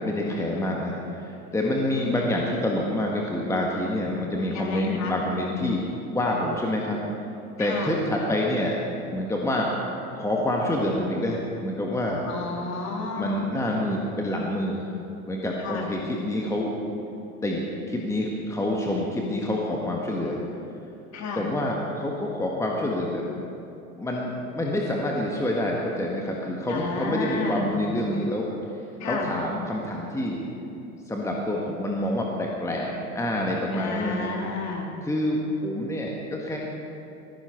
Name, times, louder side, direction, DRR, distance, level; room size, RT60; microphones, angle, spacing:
voice 1, 0.0-7.0 7.6-8.8 9.1-9.7 10.2-12.3 13.2-14.9 15.3-16.7 17.4-20.4 21.3-23.3 24.0-28.5 29.0-30.4 31.1-34.3 35.0-36.6, left 1 dB, 5° left, -1 dB, 1.8 m, -27 dB
voice 2, 1.9-2.2 4.5-5.1 7.6-8.0 12.3-13.4 15.6-15.9 21.1-21.5 26.7-27.8 29.0-29.3 33.7-34.9, left 4 dB, 40° left, -1 dB, 3.2 m, -31 dB
20.0 x 15.0 x 4.6 m, 2.7 s
figure-of-eight pair, 80°, 45 cm